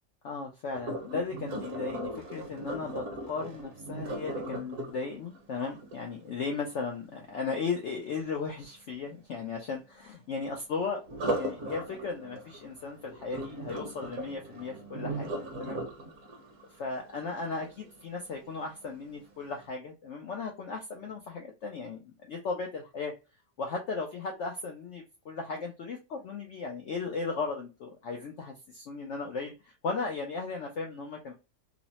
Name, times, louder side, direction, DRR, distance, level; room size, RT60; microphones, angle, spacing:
voice 1, 0.2-11.0 11.3-15.3 15.6-15.8 16.8-23.1 23.6-31.3, left 4 dB, 75° left, 1 dB, 0.6 m, -36 dB
Sink (filling or washing), 0.7-6.7 11.0-18.1 18.6-18.9 19.4-19.5, right 1 dB, 60° right, 1.0 m, -38 dB
3.1 x 2.0 x 2.7 m, 0.28 s
omnidirectional pair, 1.8 m